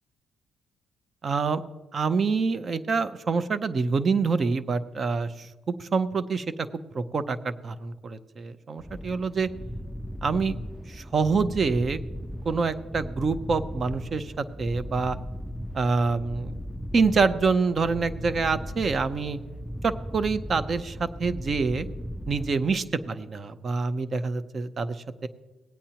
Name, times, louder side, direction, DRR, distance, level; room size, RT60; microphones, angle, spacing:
voice 1, 1.2-1.6 1.9-5.5 5.8-6.4 6.9-9.5 10.2-10.5 10.9-12.0 12.4-15.2 15.7-16.6 16.9-19.4 19.8-21.9 22.3-25.3, right 4 dB, 45° right, 12 dB, 0.7 m, -26 dB
sound 1, 8.8-23.0, equal, ahead, 0.4 m, -37 dB
18.5 x 8.8 x 2.9 m, 1.2 s
cardioid pair, 90°, 0 cm